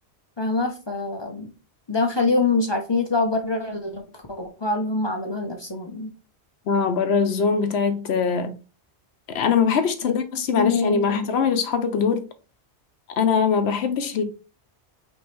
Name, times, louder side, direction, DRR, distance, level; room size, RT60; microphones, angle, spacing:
voice 1, 0.4-1.5 1.9-6.1 10.1-10.2 10.5-11.3, left 3 dB, 30° left, 0.5 m, -25 dB
voice 2, 6.7-8.5 9.3-12.3 13.2-14.2, left 6 dB, 70° left, 1.0 m, -22 dB
5.2 x 3.0 x 3.1 m
omnidirectional pair, 1.1 m